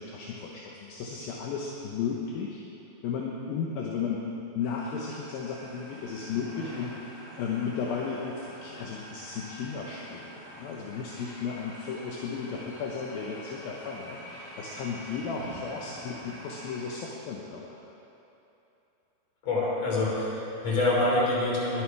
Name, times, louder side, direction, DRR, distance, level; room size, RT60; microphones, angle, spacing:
voice 1, 0.0-2.6 3.0-4.2 4.5-17.8, left 6 dB, 70° left, -2 dB, 2.5 m, -34 dB
sound 1, 4.6-16.9, equal, 20° left, 3.6 m, -46 dB
voice 2, 19.4-21.8, left 2 dB, 40° left, -5 dB, 4.3 m, -26 dB
21.0 x 11.5 x 4.8 m, 2.9 s
omnidirectional pair, 5.2 m